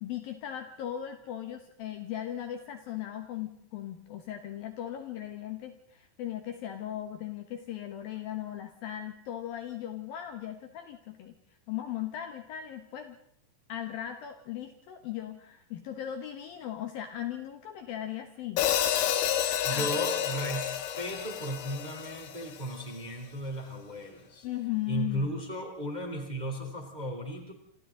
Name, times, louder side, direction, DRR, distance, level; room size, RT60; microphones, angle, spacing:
voice 1, 0.0-11.4 11.7-13.2 13.7-18.6 19.7-20.0 24.4-25.4, left 11 dB, 65° left, 6 dB, 2.6 m, -38 dB
Hi-hat, 18.6-22.7, left 10 dB, 80° left, 3.9 m, -30 dB
voice 2, 19.6-24.5 24.9-27.5, right 1 dB, 10° right, 3 dB, 2.5 m, -35 dB
27.0 x 26.5 x 3.9 m, 0.68 s
omnidirectional pair, 5.2 m